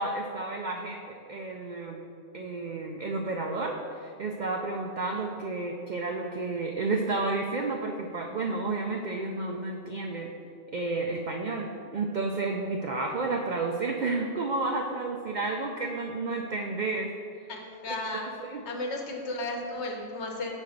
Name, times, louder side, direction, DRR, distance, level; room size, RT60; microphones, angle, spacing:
voice 1, 0.0-2.1 2.3-10.3 10.7-17.1 18.4-18.6, right 3 dB, 70° right, 2 dB, 0.4 m, -31 dB
voice 2, 17.5-18.3 18.6-20.5, left 2 dB, 65° left, 1 dB, 1.2 m, -34 dB
5.3 x 4.7 x 6.3 m, 2.5 s
omnidirectional pair, 1.3 m